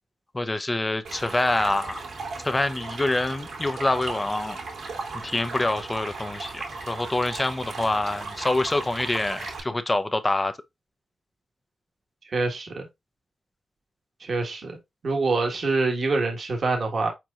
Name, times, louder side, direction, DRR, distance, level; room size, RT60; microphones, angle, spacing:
voice 1, 0.3-2.0 2.4-4.6 5.2-10.5, left 2 dB, 25° left, 0.6 m, -26 dB
Stream, 1.0-9.6, right 3 dB, 75° right, 2.3 m, -36 dB
voice 2, 12.3-12.9 14.2-14.8 15.0-17.1, right 3 dB, 60° right, 1.5 m, -25 dB
4.5 x 4.4 x 2.5 m
cardioid pair, 75°, 0 cm